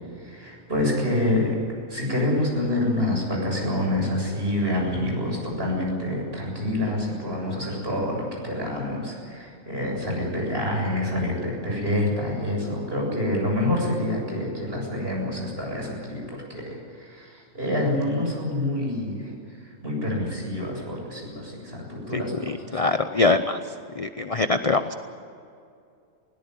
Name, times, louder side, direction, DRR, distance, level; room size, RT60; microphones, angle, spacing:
voice 1, 0.2-1.6 1.9-19.3 19.8-22.8, left 1 dB, 40° right, -1 dB, 7.8 m, -27 dB
voice 2, 22.1-23.6 24.0-24.9, left 3 dB, 35° left, 9 dB, 0.7 m, -23 dB
21.5 x 18.0 x 9.6 m, 2.4 s
omnidirectional pair, 1.5 m